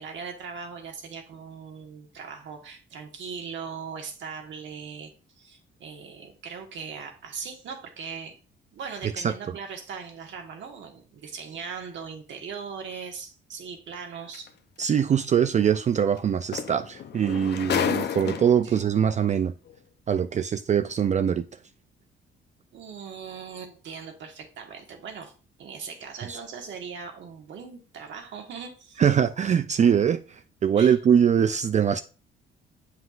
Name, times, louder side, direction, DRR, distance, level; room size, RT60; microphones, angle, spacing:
voice 1, 0.0-8.4 8.7-14.5 18.6-18.8 22.7-25.3 25.6-29.1 30.8-31.0, right 6 dB, 70° right, 1.6 m, -39 dB
sound 1, 14.3-14.5 16.2-16.3 16.5-18.8 19.7-19.8, left 8 dB, 60° left, 0.7 m, -30 dB
voice 2, 14.8-19.5 20.1-21.5 26.3-26.4 29.0-32.0, right 8 dB, 35° right, 0.4 m, -22 dB
7.5 x 5.7 x 2.5 m
cardioid pair, 90°, 20 cm